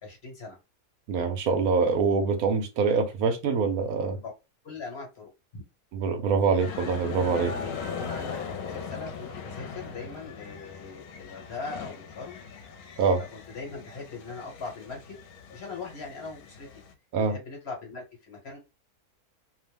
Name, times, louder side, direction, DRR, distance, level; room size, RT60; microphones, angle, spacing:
voice 1, 0.0-0.6 4.1-4.3 4.6-5.6 7.3-12.4 13.3-15.2 15.5-16.7 17.3-18.6, left 4 dB, 45° left, 1.3 m, -40 dB
voice 2, 1.1-4.2 5.9-7.5 13.0-13.2 17.1-17.4, right 5 dB, 75° right, 1.1 m, -25 dB
sound 1, 6.6-16.9, left 6 dB, 75° left, 1.1 m, -39 dB
2.8 x 2.1 x 3.2 m
omnidirectional pair, 1.6 m